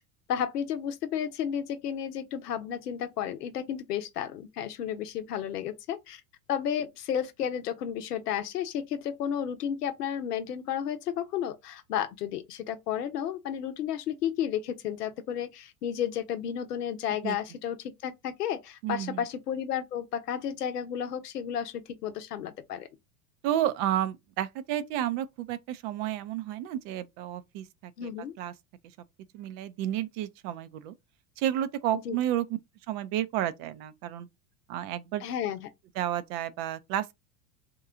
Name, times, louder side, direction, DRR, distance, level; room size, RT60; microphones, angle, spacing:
voice 1, 0.3-6.2 6.5-22.9 28.0-28.3 32.0-32.2 35.2-35.7, left 9 dB, 85° left, 0.7 m, -32 dB
voice 2, 18.8-19.2 23.4-28.1 28.4-28.5 29.3-30.9 31.4-32.5 32.9-34.3 34.7-35.2 36.0-37.1, right 12 dB, 50° right, 0.5 m, -31 dB
2.9 x 2.3 x 3.6 m
hypercardioid pair, 95°, 46 cm